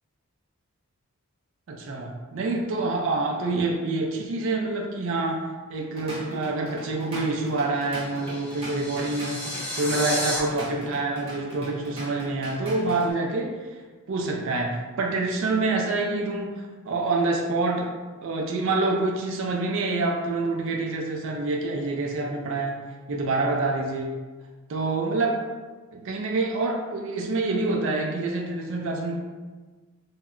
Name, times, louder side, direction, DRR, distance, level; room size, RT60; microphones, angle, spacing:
voice 1, 1.7-9.4 9.8-13.6 14.1-17.9 18.2-22.8 23.1-24.2 24.7-25.4 25.9-29.2, right 3 dB, 60° right, 0 dB, 0.4 m, -27 dB
Drum kit / Drum, 5.7-13.1, equal, 25° right, 0.8 m, -39 dB
sound 1, 7.7-10.4, left 1 dB, 5° left, 0.5 m, -32 dB
2.2 x 2.0 x 3.6 m, 1.3 s
head